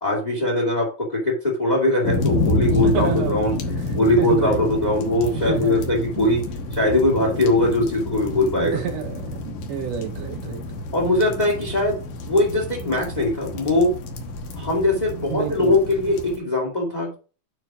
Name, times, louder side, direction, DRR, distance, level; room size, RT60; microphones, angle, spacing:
voice 1, 0.0-3.6 3.9-6.4 6.7-8.7 10.9-14.0 14.5-17.1, left 1 dB, 15° left, 1.9 m, -21 dB
sound 1, 2.0-16.4, left 1 dB, 80° left, 2.9 m, -29 dB
voice 2, 2.8-3.4 3.9-4.6 5.3-6.3 7.2-7.3 8.6-10.7 15.3-15.8, right 8 dB, 65° right, 2.1 m, -29 dB
9.6 x 3.8 x 4.9 m
omnidirectional pair, 3.7 m